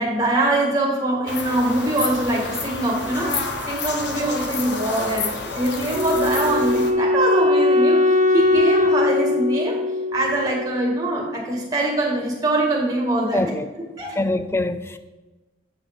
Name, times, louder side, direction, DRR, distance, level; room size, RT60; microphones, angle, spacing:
voice 1, 0.0-9.8 10.1-13.4 13.8-14.2, right 1 dB, 20° right, 1.9 m, -23 dB
sound 1, 1.3-6.9, left 3 dB, 65° left, 0.9 m, -29 dB
Wind instrument woodwind instrument, 5.9-11.0, left 2 dB, 40° right, 0.6 m, -20 dB
voice 2, 13.3-13.7 14.2-15.0, left 2 dB, 15° left, 0.3 m, -23 dB
8.6 x 5.0 x 5.3 m
head